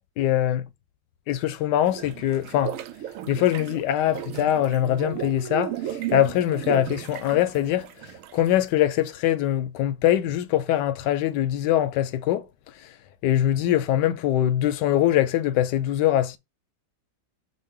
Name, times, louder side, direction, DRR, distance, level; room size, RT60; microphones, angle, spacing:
voice 1, 0.2-0.6 1.3-2.8 3.3-12.5 12.8-12.9 13.2-16.4, left 12 dB, 75° left, 1.1 m, -23 dB
sound 1, 1.9-8.6, right 12 dB, 85° right, 0.7 m, -35 dB
6.4 x 2.2 x 3.6 m
omnidirectional pair, 2.0 m